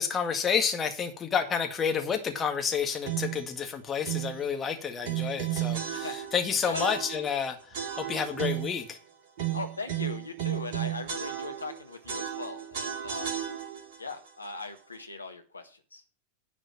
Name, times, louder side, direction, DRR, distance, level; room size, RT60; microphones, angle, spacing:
voice 1, 0.0-9.0, left 7 dB, 20° left, 5 dB, 1.9 m, -30 dB
sound 1, 3.0-3.5 4.0-4.4 5.0-6.4 6.7-7.4 7.7-8.8 9.4-11.8 12.1-14.0, right 11 dB, 50° right, 2.3 m, -33 dB
voice 2, 9.5-13.4 14.0-16.0, left 3 dB, 80° left, 5 dB, 1.6 m, -39 dB
10.5 x 5.2 x 7.7 m, 0.38 s
figure-of-eight pair, 90°, 0 cm